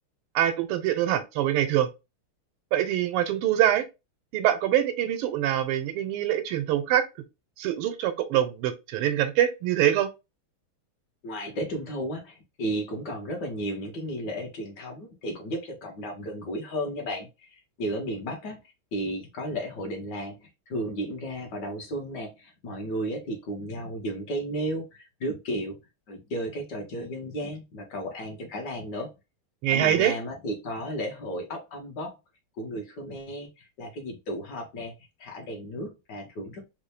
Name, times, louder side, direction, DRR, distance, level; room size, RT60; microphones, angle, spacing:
voice 1, 0.3-1.9 2.7-3.8 4.3-7.0 7.6-10.1 29.6-30.1, right 11 dB, 90° right, 1.5 m, -24 dB
voice 2, 11.2-18.6 18.9-25.8 26.1-29.1 29.7-32.2 32.6-34.9 35.2-36.6, equal, 60° left, 1.3 m, -34 dB
4.2 x 2.1 x 3.2 m
omnidirectional pair, 2.4 m